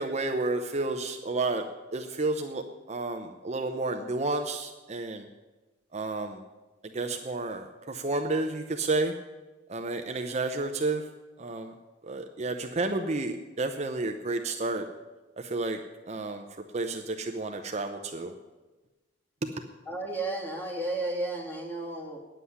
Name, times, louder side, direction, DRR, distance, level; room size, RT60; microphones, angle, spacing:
voice 1, 0.0-1.6 1.9-2.6 2.9-5.3 5.9-6.4 6.9-9.1 9.7-11.0 11.4-11.7 12.1-14.9 15.4-15.8 16.1-16.4 16.7-18.3, right 2 dB, 35° right, 5 dB, 0.7 m, -31 dB
voice 2, 19.9-22.2, right 2 dB, 10° left, -2 dB, 2.5 m, -33 dB
10.0 x 7.6 x 9.6 m, 1.2 s
head